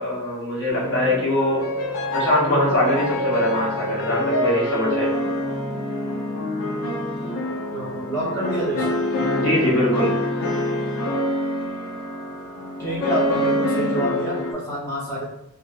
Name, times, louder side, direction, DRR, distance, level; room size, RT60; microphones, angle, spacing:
voice 1, 0.0-1.7 2.1-5.1 9.3-10.1, left 1 dB, 60° left, -6 dB, 0.9 m, -22 dB
sound 1, 0.7-14.5, left 1 dB, 80° left, 0.5 m, -26 dB
voice 2, 7.7-8.9 12.8-15.2, right 1 dB, 15° left, -8 dB, 0.6 m, -27 dB
2.6 x 2.5 x 2.2 m, 0.87 s
head